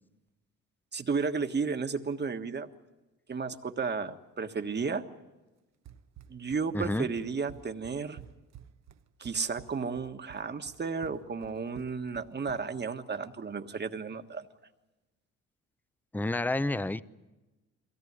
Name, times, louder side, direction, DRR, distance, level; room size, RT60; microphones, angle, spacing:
voice 1, 0.9-2.7 3.3-5.0 6.3-8.2 9.2-14.4, right 5 dB, 35° right, 7 dB, 1.5 m, -33 dB
Run, 5.8-12.9, right 10 dB, 60° right, 1.1 m, -51 dB
voice 2, 6.7-7.1 16.1-17.0, left 2 dB, 5° left, 16 dB, 0.7 m, -29 dB
23.0 x 17.5 x 9.6 m, 1.1 s
cardioid pair, 90°, 30 cm